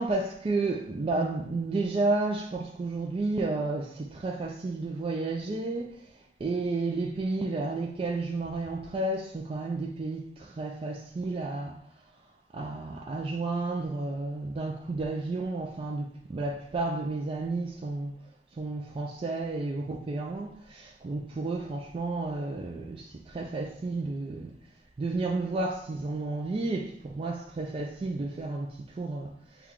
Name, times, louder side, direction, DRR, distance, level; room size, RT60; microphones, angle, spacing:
voice 1, 0.0-5.9 6.4-11.8 12.5-18.1 18.6-24.5 25.0-29.7, right 3 dB, 30° right, 0.3 m, -32 dB
6.3 x 2.2 x 3.6 m
head